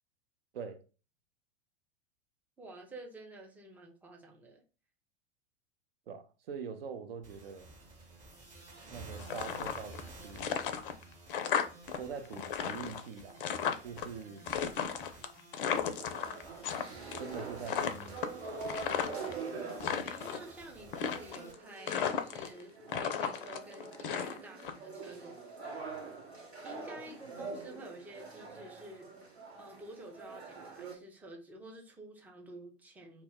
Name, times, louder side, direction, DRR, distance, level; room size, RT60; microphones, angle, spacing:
voice 1, 2.6-4.6 20.0-22.7 23.0-25.6 26.6-29.1 29.6-33.2, right 1 dB, 5° right, 0.4 m, -50 dB
voice 2, 6.1-7.7 8.9-10.5 12.0-13.5 13.8-14.5 17.2-18.2, right 6 dB, 65° right, 0.5 m, -43 dB
sound 1, 7.2-21.5, right 3 dB, 25° right, 0.9 m, -53 dB
sound 2, 9.2-10.1 10.4-12.0 12.2-14.1 14.5-16.8 17.1-17.4 17.7-19.3 19.7-20.4 20.9-21.5 21.9-22.6 22.9-24.7, left 8 dB, 55° left, 0.4 m, -34 dB
sound 3, 16.0-30.9, right 4 dB, 80° right, 0.9 m, -45 dB
2.1 x 2.0 x 3.4 m
figure-of-eight pair, 85°, 32 cm